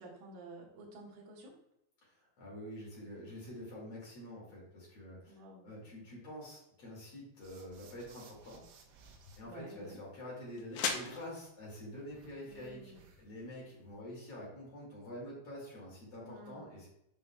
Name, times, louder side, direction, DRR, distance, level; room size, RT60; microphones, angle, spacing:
voice 1, 0.0-1.6 5.3-5.7 9.4-10.0 12.5-13.0 16.2-16.6, right 2 dB, 60° right, -3 dB, 2.8 m, -51 dB
voice 2, 2.4-5.4 5.6-8.6 9.4-16.9, left 1 dB, 40° left, -5 dB, 2.3 m, -47 dB
sound 1, 7.4-9.4 12.1-13.4, right 5 dB, 80° right, 3.5 m, -60 dB
sound 2, 8.1-14.0, left 6 dB, 90° left, 2.6 m, -44 dB
8.3 x 5.4 x 2.3 m, 0.80 s
omnidirectional pair, 6.0 m